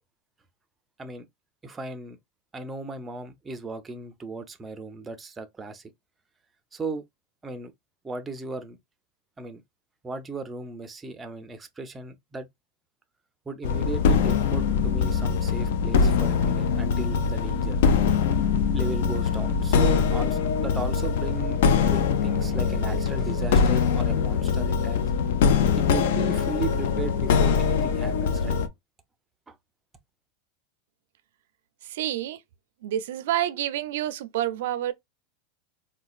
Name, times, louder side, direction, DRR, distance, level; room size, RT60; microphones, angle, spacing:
voice 1, 1.6-2.2 2.5-5.9 6.7-7.0 7.4-7.7 8.0-8.8 9.4-9.6 10.0-12.5 13.5-17.8 18.7-25.0 25.7-28.6 29.5-29.6, right 3 dB, 10° right, 0.4 m, -36 dB
sound 1, 13.6-28.7, left 6 dB, 70° left, 0.5 m, -23 dB
voice 2, 31.9-32.4 32.8-34.9, right 12 dB, 70° right, 0.4 m, -28 dB
3.9 x 2.1 x 2.4 m
supercardioid pair, 165°, 0 cm